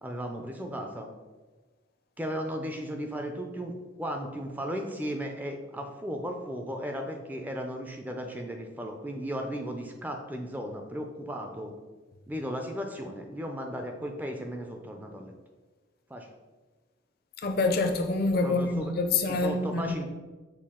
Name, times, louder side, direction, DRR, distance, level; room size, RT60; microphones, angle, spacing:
voice 1, 0.0-1.1 2.2-11.7 12.3-15.3 16.1-16.3 18.4-18.9 19.3-20.1, equal, 10° right, 0.3 m, -35 dB
voice 2, 17.4-19.9, left 3 dB, 50° left, 0.5 m, -26 dB
6.4 x 2.3 x 3.6 m
head